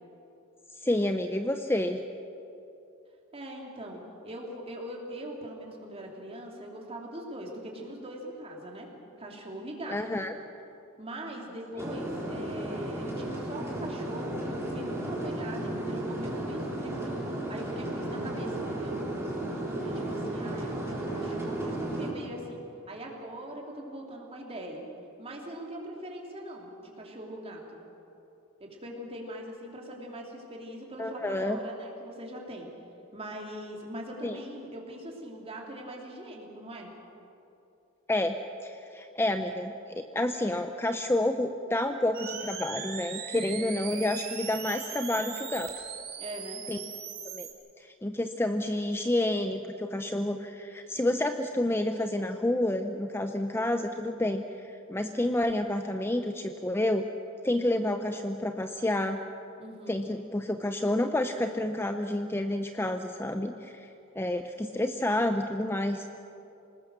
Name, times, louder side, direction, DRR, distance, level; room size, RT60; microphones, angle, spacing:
voice 1, 0.8-2.0 9.9-10.3 31.0-31.6 34.2-34.4 38.1-38.4 38.6-45.7 46.7-46.8 47.2-47.5 47.8-57.0 57.4-59.2 59.9-63.9 64.2-66.1, left 1 dB, 10° left, 6 dB, 0.6 m, -29 dB
voice 2, 3.3-8.9 9.2-10.0 11.0-19.0 19.8-24.8 25.2-27.8 28.6-32.7 33.1-36.9 46.2-46.6 59.6-60.0, right 1 dB, 30° right, 0 dB, 3.3 m, -41 dB
sound 1, 11.8-22.1, right 1 dB, 10° right, 3.6 m, -34 dB
sound 2, 42.1-47.5, right 8 dB, 50° right, 2.8 m, -39 dB
26.5 x 19.5 x 6.7 m, 2.9 s
head